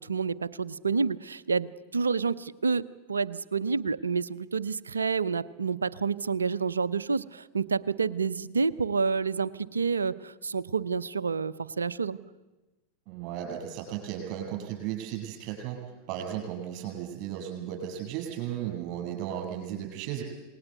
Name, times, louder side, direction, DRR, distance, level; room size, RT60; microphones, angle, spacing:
voice 1, 0.0-12.2, right 5 dB, 75° right, 17 dB, 0.8 m, -29 dB
voice 2, 13.1-15.8 16.1-20.2, right 10 dB, 40° right, 1 dB, 8.0 m, -35 dB
27.5 x 20.0 x 8.2 m, 1.2 s
figure-of-eight pair, 90°, 0 cm